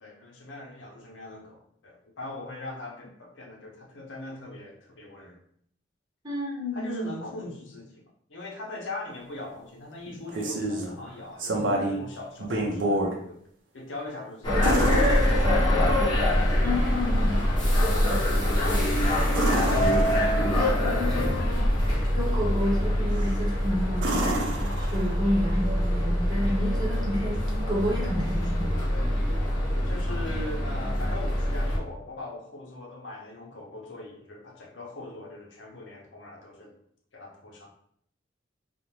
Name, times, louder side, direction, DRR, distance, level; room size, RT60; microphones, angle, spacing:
voice 1, 0.0-5.4 6.7-7.9 8.3-13.4 13.7-16.1 16.8-19.2 27.1-27.2 28.9-29.1 29.8-36.7 37.1-37.7, left 2 dB, 80° left, -1 dB, 0.7 m, -41 dB
voice 2, 6.2-7.1 16.6-17.4 20.5-28.8, left 1 dB, 20° right, -4 dB, 0.7 m, -31 dB
sound 1, 10.1-10.9 11.4-12.0 12.4-13.1 14.6-15.9 19.3-20.6 23.1-23.5 24.0-25.4 27.5-27.6, right 1 dB, 80° right, 0.5 m, -29 dB
sound 2, 14.4-31.8, left 1 dB, 25° left, 0.8 m, -24 dB
2.5 x 2.1 x 3.0 m, 0.67 s
head